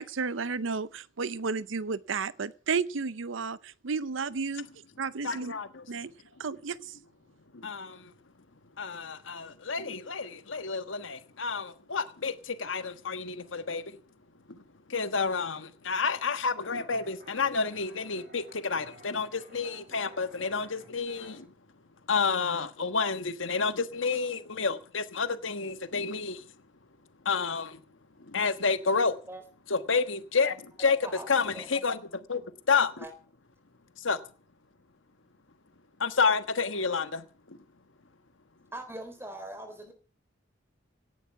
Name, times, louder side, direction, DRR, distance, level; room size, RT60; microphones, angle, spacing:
voice 1, 0.0-4.7 5.0-5.5 5.9-6.1 6.4-7.0, right 5 dB, 85° right, 0.7 m, -32 dB
voice 2, 5.2-5.8 7.5-8.1 8.8-13.8 14.5-14.6 14.9-21.5 22.1-26.4 27.2-27.8 28.3-29.2 29.7-31.0 31.3-32.4 32.7-33.0 34.0-34.2 36.0-37.6, left 5 dB, 85° left, 1.4 m, -30 dB
sound 1, 16.4-21.4, right 1 dB, 50° right, 5.8 m, -53 dB
voice 3, 38.7-39.9, right 1 dB, 10° right, 3.8 m, -41 dB
17.5 x 11.0 x 5.9 m
head